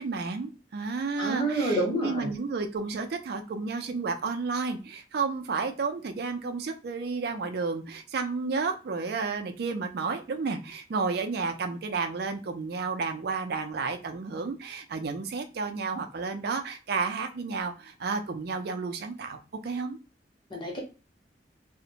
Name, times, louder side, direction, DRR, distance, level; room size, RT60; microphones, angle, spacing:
voice 1, 0.0-20.0, right 4 dB, 60° right, 7 dB, 0.4 m, -32 dB
voice 2, 1.2-2.3 20.5-20.8, right 1 dB, 25° left, -1 dB, 0.9 m, -28 dB
2.5 x 2.1 x 2.8 m, 0.33 s
head